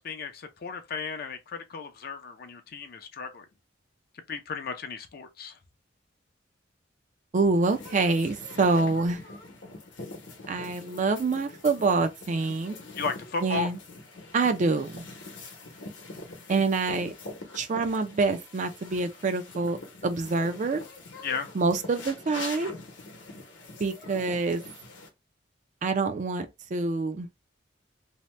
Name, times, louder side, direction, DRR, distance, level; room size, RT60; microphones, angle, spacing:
voice 1, 0.0-3.5 4.3-5.6 13.0-13.7 21.2-21.5, left 5 dB, 50° left, 0.5 m, -34 dB
voice 2, 7.3-9.2 10.5-12.8 13.4-13.8 14.3-15.0 16.5-17.1 17.5-19.8 20.0-20.8 21.5-22.7 23.8-24.6 25.8-27.3, right 3 dB, 40° right, 0.4 m, -26 dB
sound 1, 7.6-25.1, left 2 dB, 65° left, 0.9 m, -44 dB
2.7 x 2.1 x 3.1 m
head